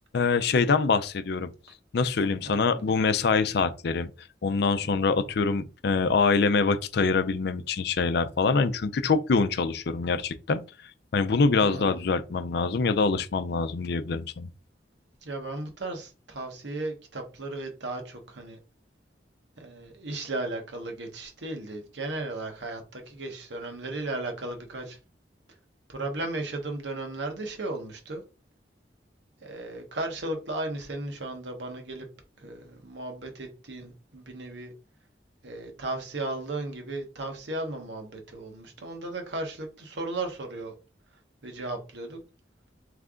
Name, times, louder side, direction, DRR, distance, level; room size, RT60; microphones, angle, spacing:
voice 1, 0.1-1.5 1.9-4.1 4.4-10.6 11.1-14.5, left 4 dB, 65° left, 0.4 m, -24 dB
voice 2, 2.4-2.8 11.6-12.0 15.2-18.6 19.6-25.0 25.9-28.2 29.4-32.1 32.4-34.7 35.4-40.8 41.4-42.2, right 2 dB, 80° right, 1.1 m, -35 dB
3.7 x 3.3 x 3.6 m
head